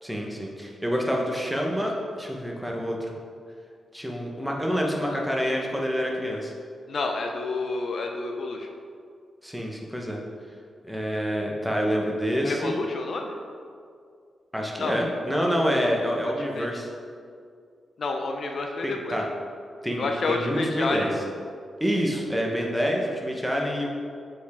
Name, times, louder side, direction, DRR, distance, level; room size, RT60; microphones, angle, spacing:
voice 1, 0.0-3.1 3.9-6.5 9.4-10.2 10.9-12.8 14.5-16.9 18.8-19.2 19.8-21.1 21.8-23.9, equal, 5° right, -1 dB, 0.9 m, -27 dB
voice 2, 6.9-8.7 12.4-13.3 14.8-15.0 16.4-16.7 18.0-19.2 20.0-21.1, left 3 dB, 55° left, 3 dB, 0.6 m, -29 dB
7.1 x 4.7 x 3.5 m, 2.3 s
wide cardioid pair, 115°, 0 cm